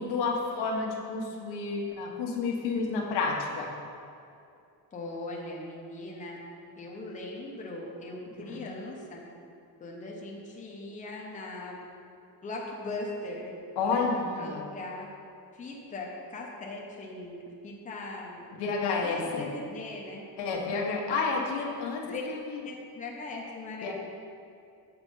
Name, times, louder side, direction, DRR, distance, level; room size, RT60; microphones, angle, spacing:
voice 1, 0.0-3.7 8.4-8.6 13.8-14.6 18.5-19.4 20.4-22.2 22.5-22.6 23.8-23.9, left 4 dB, 85° left, -1 dB, 1.3 m, -30 dB
voice 2, 4.9-6.4 6.8-9.3 9.8-11.8 12.4-13.6 13.8-15.1 15.5-17.4 17.6-18.4 19.0-20.3 22.0-22.2 22.6-23.9, left 2 dB, 20° left, -2 dB, 0.8 m, -39 dB
7.3 x 4.9 x 5.4 m, 2.5 s
cardioid pair, 165°, 39 cm